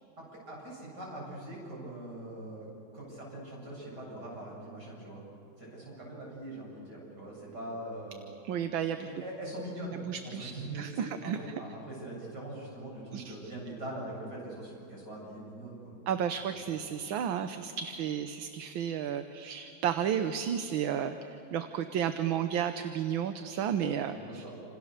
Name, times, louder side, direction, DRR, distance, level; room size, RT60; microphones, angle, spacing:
voice 1, 0.5-2.7 2.9-5.2 5.6-8.3 9.0-15.9 16.5-16.8 24.1-24.5, right 1 dB, 55° right, -3 dB, 8.8 m, -42 dB
voice 2, 8.5-9.1 10.1-11.4 13.1-13.4 16.1-21.2 21.5-24.4, right 9 dB, 80° right, 8 dB, 1.7 m, -32 dB
28.5 x 27.0 x 6.7 m, 2.7 s
omnidirectional pair, 2.2 m